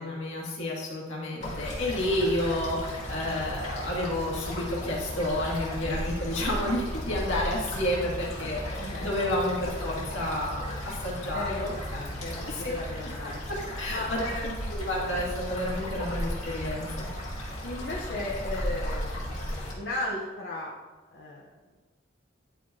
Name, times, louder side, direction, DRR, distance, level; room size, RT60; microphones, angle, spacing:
voice 1, 0.0-2.8 3.1-11.7 12.5-12.6 13.8-17.1, left 1 dB, 80° left, -4 dB, 2.1 m, -30 dB
sound 1, 1.4-19.7, equal, 35° left, 2.1 m, -35 dB
voice 2, 8.8-9.2 11.3-13.4 13.9-14.7 17.6-19.5 19.7-20.7 21.1-21.4, left 2 dB, 65° left, -5 dB, 1.0 m, -36 dB
11.0 x 4.7 x 2.8 m, 1.3 s
head